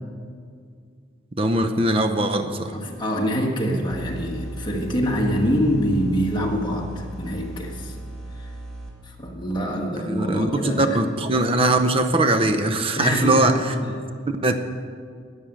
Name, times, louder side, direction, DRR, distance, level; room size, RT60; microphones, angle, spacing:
voice 1, 1.4-2.7 10.1-13.5 14.4-14.5, right 2 dB, 30° right, 8 dB, 0.6 m, -21 dB
voice 2, 2.7-7.9 8.3-8.5 9.0-11.0 12.9-13.5 13.8-14.1, equal, 25° left, 0 dB, 1.5 m, -25 dB
sound 1, 3.9-8.9, right 1 dB, 5° left, 1.8 m, -37 dB
12.5 x 6.5 x 8.7 m, 2.1 s
head